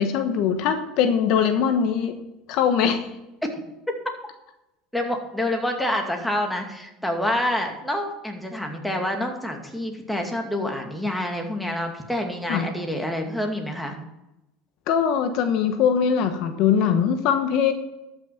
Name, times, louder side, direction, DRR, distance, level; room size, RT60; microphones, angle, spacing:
voice 1, 0.0-2.1 2.5-3.1 12.5-12.6 14.9-17.7, left 7 dB, 65° left, 7 dB, 1.2 m, -21 dB
voice 2, 4.9-13.9, left 1 dB, 5° left, 2 dB, 2.3 m, -27 dB
13.0 x 6.2 x 5.9 m, 0.93 s
supercardioid pair, 95°, 0 cm